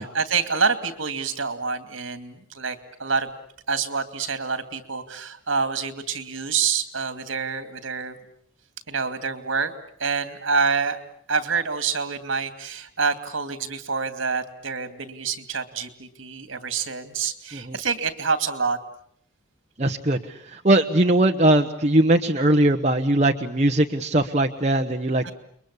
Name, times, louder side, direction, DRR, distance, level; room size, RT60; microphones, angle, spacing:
voice 1, 0.0-3.3 3.7-8.2 8.9-9.7 10.0-11.0 11.3-18.8 25.2-25.3, right 5 dB, 70° right, 10 dB, 2.6 m, -27 dB
voice 2, 19.8-20.2 20.5-25.3, right 1 dB, 35° right, 3 dB, 1.2 m, -20 dB
30.0 x 22.5 x 8.5 m, 0.65 s
head